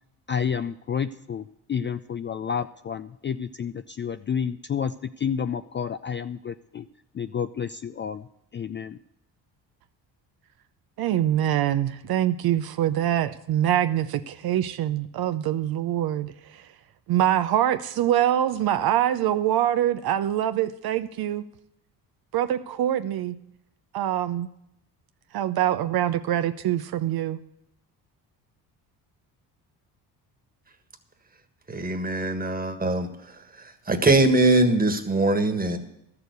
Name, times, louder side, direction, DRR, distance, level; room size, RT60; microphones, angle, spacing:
voice 1, 0.3-6.9 7.1-8.2 8.5-9.0, left 7 dB, 30° left, 0.4 m, -30 dB
voice 2, 11.0-16.7 17.1-21.4 22.3-23.4 23.9-24.5 25.3-27.4, right 11 dB, 60° right, 0.6 m, -24 dB
voice 3, 31.7-33.1 33.9-35.8, right 2 dB, 20° right, 1.6 m, -21 dB
12.5 x 6.9 x 8.1 m
supercardioid pair, 70°, 41 cm